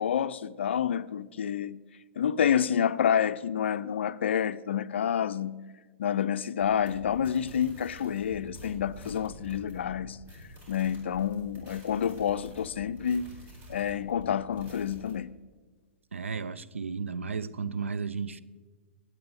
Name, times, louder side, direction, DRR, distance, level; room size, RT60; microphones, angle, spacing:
voice 1, 0.0-1.8 2.2-5.6 6.0-10.2 10.7-13.3 13.7-15.4, left 8 dB, 65° left, 0.4 m, -28 dB
sound 1, 6.6-15.1, right 1 dB, 30° right, 4.3 m, -48 dB
voice 2, 16.1-18.4, right 5 dB, 75° right, 0.5 m, -34 dB
20.5 x 8.2 x 3.8 m
figure-of-eight pair, 105°, 7 cm